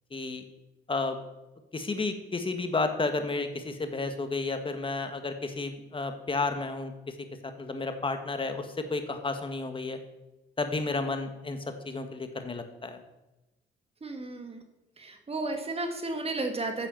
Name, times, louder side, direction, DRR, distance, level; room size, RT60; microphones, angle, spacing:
voice 1, 0.1-0.4 0.9-1.2 1.7-6.9 7.6-10.0 10.6-11.6 11.8-13.0, left 3 dB, 25° left, 7 dB, 1.6 m, -32 dB
voice 2, 14.0-14.6 15.0-16.9, right 2 dB, 30° right, 6 dB, 1.9 m, -33 dB
10.0 x 6.8 x 7.1 m, 0.99 s
cardioid pair, 90°, 20 cm